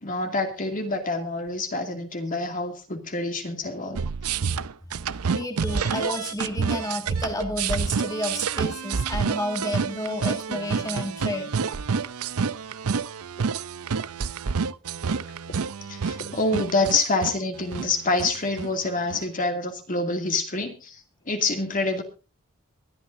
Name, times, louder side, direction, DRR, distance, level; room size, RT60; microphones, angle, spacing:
voice 1, 0.0-4.0 13.4-13.5 15.0-15.1 15.9-21.0 21.3-22.0, left 3 dB, 40° left, 5 dB, 2.4 m, -27 dB
sound 1, 3.9-19.3, right 5 dB, 80° right, 0.6 m, -28 dB
voice 2, 5.3-11.5, left 1 dB, 15° left, 4 dB, 2.0 m, -31 dB
23.0 x 11.5 x 2.7 m, 0.31 s
head